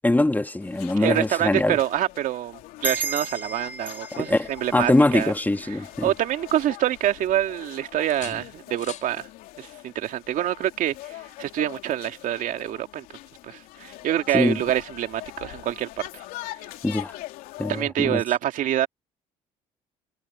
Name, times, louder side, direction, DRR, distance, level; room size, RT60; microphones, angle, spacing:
voice 1, 0.0-1.8 4.2-6.1 14.3-14.6 16.8-17.1 17.6-18.2, left 2 dB, 10° left, 1.6 m, -22 dB
sound 1, 0.6-17.8, left 17 dB, 75° left, 2.6 m, -43 dB
voice 2, 1.0-5.3 5.7-5.8 6.0-9.3 9.6-13.1 13.4-16.2 17.7-18.9, right 12 dB, 65° right, 2.3 m, -26 dB
sound 2, 2.8-5.9, right 2 dB, 10° right, 2.3 m, -34 dB
sound 3, 6.9-7.7 8.1-9.2 11.0-11.2, left 9 dB, 55° left, 5.4 m, -46 dB
supercardioid pair, 75°, 15 cm